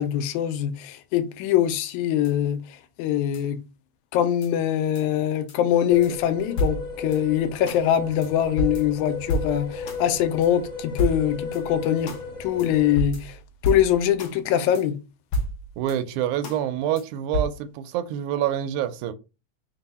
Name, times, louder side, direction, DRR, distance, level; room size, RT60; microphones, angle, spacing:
voice 1, 0.0-2.6 3.0-3.6 4.1-12.1 12.4-13.4 13.6-15.0, left 10 dB, 85° left, 1.9 m, -23 dB
sound 1, 2.2-2.3 3.3-3.4 4.4-4.5 4.9-5.0 5.5-5.6 6.0-6.1 6.6-7.2 7.7-7.8 8.2-8.3 8.6-10.0 10.4-10.5 11.0-11.6 12.1-12.2 12.6-12.7 13.0-14.3 14.7-14.8 15.3-16.0 16.4-16.6 17.0-17.1 17.3-17.5, equal, 65° left, 1.3 m, -29 dB
sound 2, 5.9-13.0, left 4 dB, 35° left, 1.1 m, -35 dB
voice 2, 15.8-19.1, right 11 dB, 85° right, 1.9 m, -27 dB
4.7 x 2.2 x 4.1 m
omnidirectional pair, 3.4 m